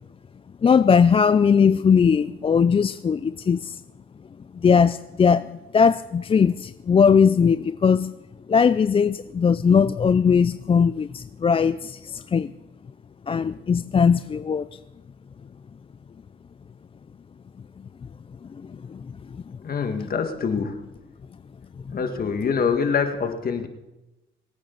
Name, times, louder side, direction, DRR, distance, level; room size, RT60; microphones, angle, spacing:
voice 1, 0.6-3.8 4.5-8.1 8.5-12.5 13.3-14.8 18.6-19.0, left 6 dB, 30° left, 13 dB, 0.4 m, -19 dB
voice 2, 19.6-20.8 21.9-23.7, left 6 dB, 50° left, 6 dB, 1.8 m, -25 dB
25.0 x 9.4 x 4.0 m, 0.99 s
cardioid pair, 90°, 20 cm